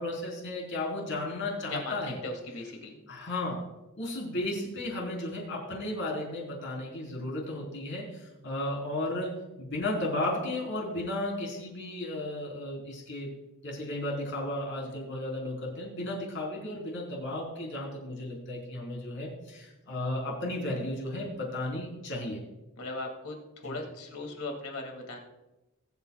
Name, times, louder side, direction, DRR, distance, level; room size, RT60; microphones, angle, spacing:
voice 1, 0.0-2.2 3.1-3.6 4.0-9.3 9.6-13.3 13.6-22.4 23.6-23.8, left 1 dB, 60° left, -2 dB, 3.7 m, -34 dB
voice 2, 1.7-3.0 22.8-23.4 23.6-25.2, left 2 dB, 75° left, 3 dB, 2.2 m, -38 dB
21.5 x 8.2 x 2.3 m, 1.0 s
head